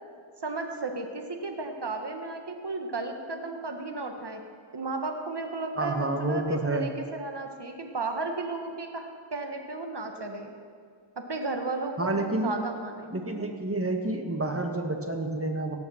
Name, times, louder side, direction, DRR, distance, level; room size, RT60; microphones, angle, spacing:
voice 1, 0.4-4.4 4.7-10.5 11.2-13.1, right 3 dB, 55° right, 4 dB, 1.6 m, -34 dB
voice 2, 5.8-6.9 12.0-12.5 13.1-15.8, right 2 dB, 30° right, 4 dB, 1.6 m, -29 dB
17.5 x 7.1 x 7.2 m, 2.1 s
wide cardioid pair, 55°, 48 cm